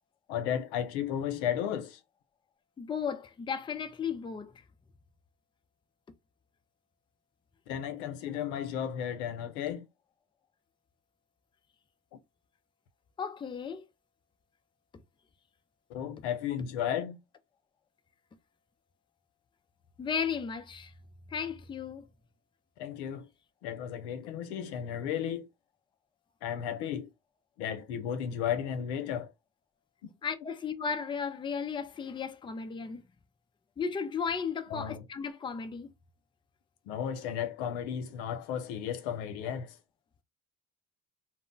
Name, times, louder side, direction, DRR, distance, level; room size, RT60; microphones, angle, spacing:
voice 1, 0.3-2.0 7.7-9.9 15.9-17.2 22.8-23.3 23.6-25.5 26.4-27.1 27.6-29.3 34.7-35.0 36.9-39.8, left 9 dB, 90° left, 0.6 m, -34 dB
voice 2, 2.8-4.5 13.2-13.8 20.0-20.9 21.3-22.1 30.2-33.0 33.8-35.9, left 6 dB, 15° left, 0.4 m, -35 dB
2.1 x 2.0 x 3.7 m
supercardioid pair, 85°, 32 cm